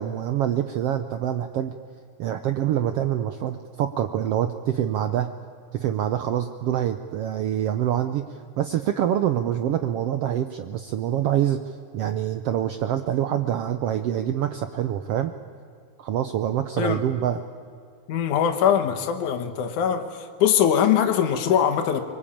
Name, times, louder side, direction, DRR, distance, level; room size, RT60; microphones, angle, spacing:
voice 1, 0.0-1.7 2.2-5.3 5.7-15.3 16.0-17.4, right 11 dB, 75° right, 9 dB, 1.4 m, -25 dB
voice 2, 18.1-22.0, left 9 dB, 75° left, 6 dB, 2.7 m, -22 dB
24.0 x 22.5 x 8.6 m, 2.3 s
omnidirectional pair, 3.6 m